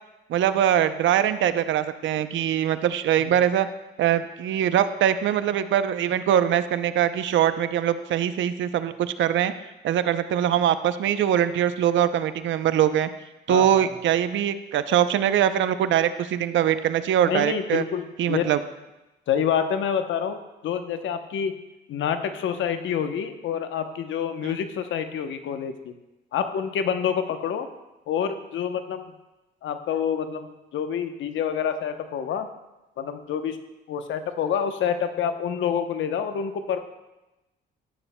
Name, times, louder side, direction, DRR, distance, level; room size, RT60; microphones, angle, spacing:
voice 1, 0.3-3.7 4.0-9.5 9.8-13.1 13.5-17.8 18.2-18.6 24.4-24.6, right 10 dB, 70° right, 12 dB, 0.6 m, -22 dB
voice 2, 13.5-13.9 17.3-18.4 19.3-21.5 21.9-25.9 26.3-27.7 28.1-29.1 29.6-32.5 33.0-33.6 33.9-36.8, left 8 dB, 75° left, 8 dB, 0.9 m, -27 dB
14.0 x 9.9 x 2.2 m, 1.0 s
cardioid pair, 90°, 20 cm